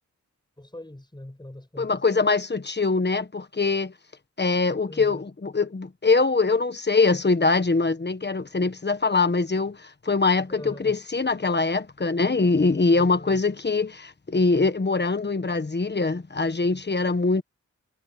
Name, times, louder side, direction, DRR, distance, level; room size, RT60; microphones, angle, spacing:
voice 1, 0.6-2.1 4.9-5.2 10.5-11.0 12.9-13.4, left 1 dB, 15° left, 7.2 m, -41 dB
voice 2, 1.8-3.9 4.4-17.4, left 3 dB, 35° left, 1.4 m, -23 dB
wide cardioid pair, 90°, 29 cm